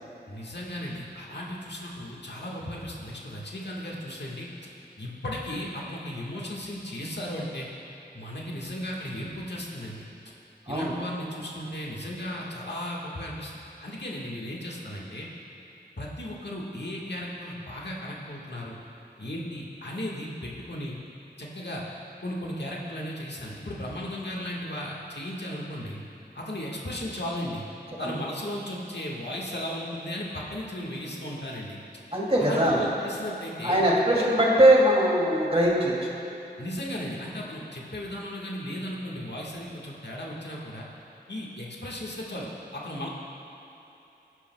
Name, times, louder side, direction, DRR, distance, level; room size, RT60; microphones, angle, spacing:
voice 1, 0.3-4.5 5.0-7.7 8.1-10.1 10.7-13.5 13.8-15.3 16.0-18.8 19.2-21.0 21.4-21.8 22.2-26.0 26.3-27.6 28.0-31.8 32.4-33.8 34.2-34.3 36.6-40.9 41.3-43.1, left 1 dB, 75° left, -4 dB, 1.5 m, -35 dB
voice 2, 32.1-32.8 33.6-36.1, right 1 dB, 35° right, -4 dB, 2.4 m, -21 dB
16.5 x 9.8 x 2.2 m, 3.0 s
wide cardioid pair, 40°, 18 cm